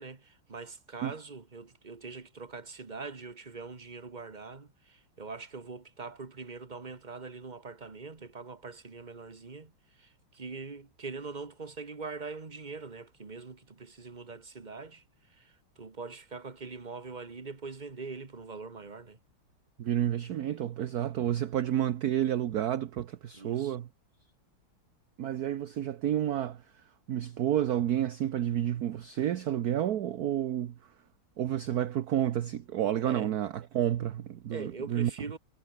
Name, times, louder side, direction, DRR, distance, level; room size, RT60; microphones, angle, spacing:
voice 1, 0.0-19.2 23.3-23.8 33.0-33.3 34.5-35.4, right 4 dB, 20° right, 1.5 m, -43 dB
voice 2, 19.8-23.9 25.2-26.6 27.1-30.7 31.4-35.1, right 11 dB, 60° right, 1.1 m, -30 dB
omnidirectional pair, 2.4 m